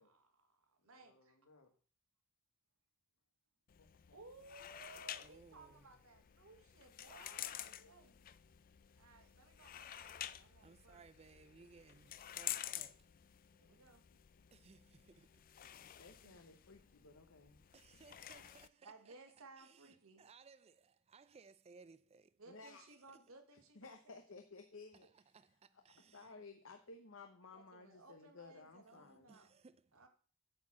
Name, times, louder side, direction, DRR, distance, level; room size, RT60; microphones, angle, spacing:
voice 1, 0.0-1.4 4.1-8.1 9.0-11.1 13.5-14.0 16.2-16.4 18.8-20.4 22.4-24.2 27.5-29.5 29.9-30.1, right 3 dB, 75° right, 1.7 m, -60 dB
voice 2, 0.8-1.7 3.8-4.2 7.6-8.5 13.6-14.5, left 3 dB, 85° left, 1.5 m, -72 dB
sound 1, 3.7-18.7, left 12 dB, 40° left, 0.4 m, -50 dB
voice 3, 5.2-5.8 10.6-13.1 14.5-15.3 17.7-19.1 19.6-22.3 25.3-26.2 28.9-29.9, right 4 dB, 30° right, 0.4 m, -62 dB
voice 4, 16.0-17.6 22.5-22.9 23.7-25.4 25.7-29.3, left 3 dB, 65° left, 1.0 m, -56 dB
8.7 x 4.5 x 7.2 m
head